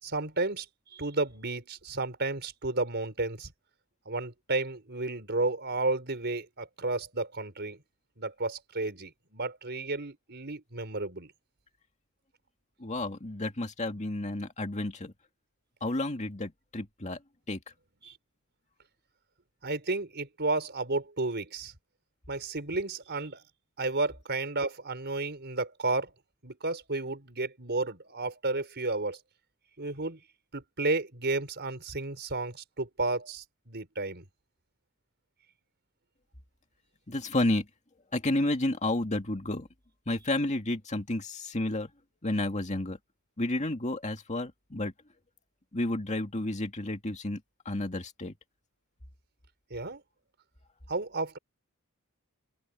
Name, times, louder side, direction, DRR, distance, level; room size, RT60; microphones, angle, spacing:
voice 1, 0.0-0.7 0.9-3.5 4.0-7.8 8.2-11.3 18.0-18.2 19.6-21.7 22.3-23.4 23.8-26.1 26.4-29.2 29.8-30.2 30.5-34.2 49.7-50.0 50.9-51.4, right 2 dB, 50° right, 4.9 m, -32 dB
voice 2, 12.8-15.1 15.8-17.2 17.5-17.6 37.1-37.7 38.1-39.7 40.1-41.9 42.2-43.0 43.4-44.9 45.7-47.4 47.7-48.3, left 1 dB, 35° left, 2.3 m, -31 dB
open air
head